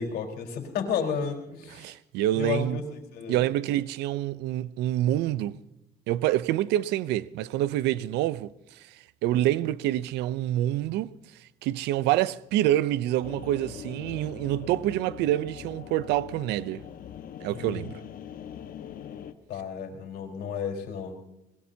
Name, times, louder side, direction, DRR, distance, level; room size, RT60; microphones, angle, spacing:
voice 1, 0.0-1.9 2.3-3.4 17.5-17.9 19.5-21.2, left 6 dB, 70° left, 4.3 m, -32 dB
voice 2, 1.7-2.8 3.3-5.6 6.1-11.1 11.6-16.8 17.4-17.9, right 13 dB, 85° right, 0.6 m, -27 dB
sound 1, 13.2-19.3, left 9 dB, 55° left, 1.3 m, -42 dB
22.5 x 21.0 x 2.8 m
cardioid pair, 110°, 17 cm